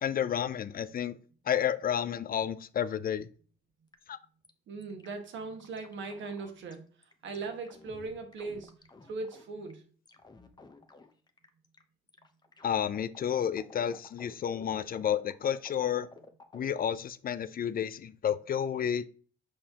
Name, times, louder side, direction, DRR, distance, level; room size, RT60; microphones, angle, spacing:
voice 1, 0.0-1.2 1.5-3.3 4.1-4.2 12.6-16.1 16.5-19.1, left 9 dB, 45° left, 0.5 m, -31 dB
sound 1, 3.9-4.0 4.4-4.5 4.8-6.8 7.0-9.7 10.1-11.8 12.1-16.8, left 3 dB, 20° left, 0.9 m, -53 dB
voice 2, 4.7-6.9 7.2-8.8 9.1-9.8, right 3 dB, 70° right, 1.5 m, -39 dB
6.4 x 5.5 x 2.9 m
cardioid pair, 90°, 20 cm